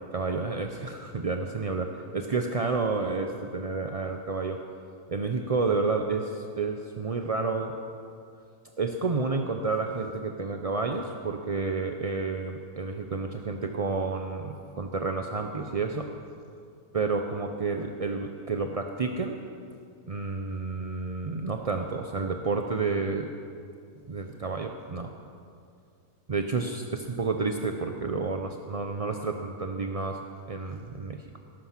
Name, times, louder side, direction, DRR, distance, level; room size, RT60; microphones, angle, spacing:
voice 1, 0.1-4.6 5.1-7.8 8.8-16.1 16.9-19.4 20.1-23.3 24.1-25.1 26.3-31.4, right 4 dB, 45° right, 4 dB, 0.4 m, -30 dB
18.5 x 11.5 x 5.9 m, 2.4 s
omnidirectional pair, 1.6 m